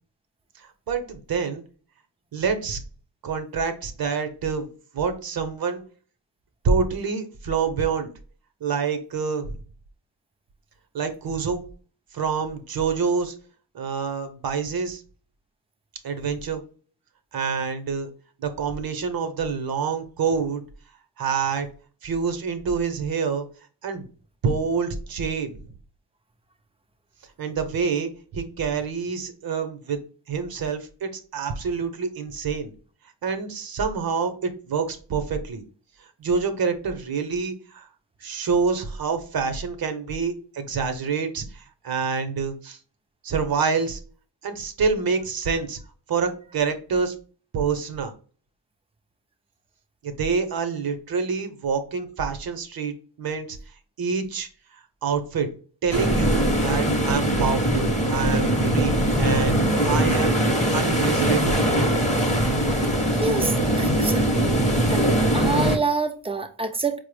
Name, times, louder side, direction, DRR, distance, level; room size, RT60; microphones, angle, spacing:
voice 1, 0.6-1.6 2.3-2.8 3.2-4.7 4.9-5.8 6.6-8.1 8.6-9.5 10.9-11.6 12.1-13.3 13.7-15.0 16.0-16.6 17.3-18.1 18.4-20.6 21.2-21.7 22.0-23.5 23.8-24.1 24.4-25.7 27.4-30.0 30.3-32.7 33.2-35.6 36.0-37.9 38.2-42.8 43.2-44.0 44.4-45.8 46.1-47.1 47.5-48.1 50.0-53.6 54.0-54.5 55.0-55.5 55.8-58.9 59.2-60.4 60.7-61.6, right 5 dB, 55° right, 0.7 m, -27 dB
sound 1, 55.9-65.8, right 1 dB, 15° left, 0.7 m, -21 dB
voice 2, 63.2-63.5 63.8-64.6 64.9-67.0, right 4 dB, 15° right, 0.4 m, -27 dB
4.3 x 2.0 x 3.1 m
cardioid pair, 95°, 43 cm